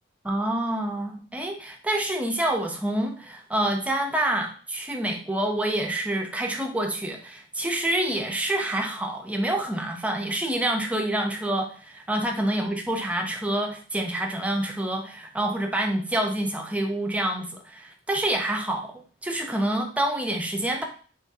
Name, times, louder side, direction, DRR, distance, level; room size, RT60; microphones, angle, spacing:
voice 1, 0.2-18.9 19.2-20.8, right 1 dB, 5° right, 3 dB, 0.4 m, -27 dB
3.9 x 2.9 x 2.4 m, 0.41 s
head